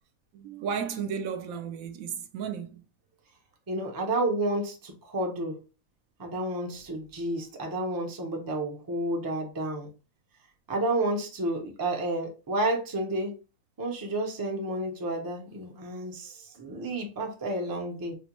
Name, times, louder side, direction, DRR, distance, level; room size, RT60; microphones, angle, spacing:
voice 1, 0.3-2.8, right 7 dB, 75° right, 1.0 m, -34 dB
voice 2, 3.7-5.6 6.2-9.9 10.7-13.4 13.8-18.1, right 1 dB, 30° right, 0.4 m, -31 dB
4.2 x 2.1 x 2.9 m
omnidirectional pair, 1.5 m